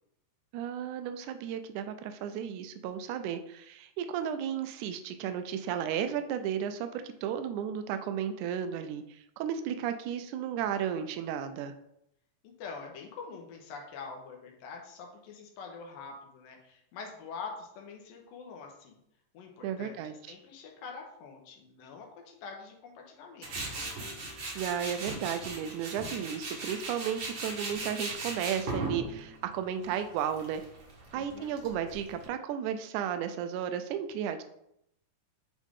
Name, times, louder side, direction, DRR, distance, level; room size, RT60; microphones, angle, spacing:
voice 1, 0.5-11.7 19.6-20.1 24.6-30.6 31.1-34.4, right 9 dB, 80° right, 9 dB, 1.8 m, -34 dB
voice 2, 12.4-19.0 19.3-23.9 31.1-31.5, left 5 dB, 80° left, 1 dB, 2.6 m, -45 dB
Tools, 23.4-32.3, right 2 dB, 55° right, 1.3 m, -39 dB
8.3 x 3.7 x 3.6 m, 0.77 s
omnidirectional pair, 4.0 m